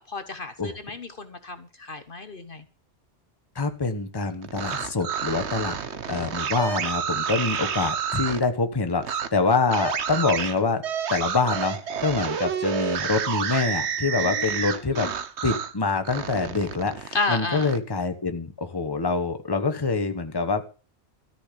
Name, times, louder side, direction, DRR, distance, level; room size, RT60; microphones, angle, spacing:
voice 1, 0.0-2.6 14.2-14.4 14.9-15.1 17.1-17.7, left 3 dB, 50° left, 10 dB, 1.3 m, -31 dB
voice 2, 3.5-5.8 6.0-10.8 11.1-15.1 15.4-20.7, left 4 dB, 20° left, 6 dB, 1.2 m, -25 dB
sound 1, 4.4-8.4 9.0-9.3 9.7-15.7 16.1-17.8, right 7 dB, 70° right, 1.2 m, -29 dB
13.5 x 6.0 x 8.5 m, 0.36 s
omnidirectional pair, 1.2 m